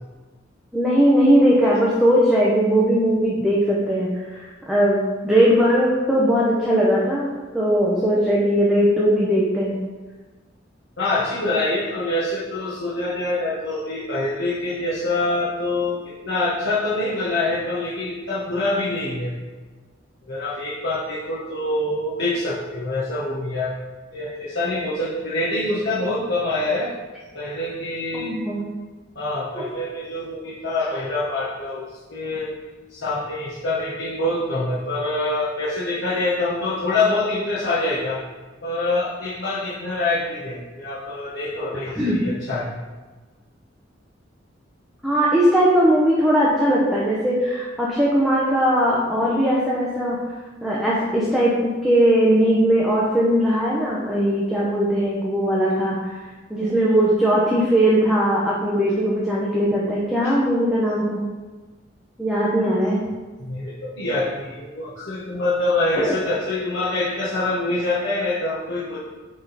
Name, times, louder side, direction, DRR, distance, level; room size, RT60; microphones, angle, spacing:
voice 1, 0.7-9.8 28.1-28.6 29.6-29.7 42.0-42.2 45.0-50.2 50.6-56.2 56.5-61.2 62.2-63.0 65.9-66.1, equal, ahead, -6 dB, 0.9 m, -19 dB
voice 2, 11.0-19.3 20.3-23.7 24.1-26.9 27.3-28.3 29.1-32.5 32.9-38.2 38.6-42.7 60.2-60.3 63.4-69.0, left 2 dB, 65° left, -9 dB, 1.3 m, -25 dB
8.7 x 3.8 x 4.1 m, 1.3 s
head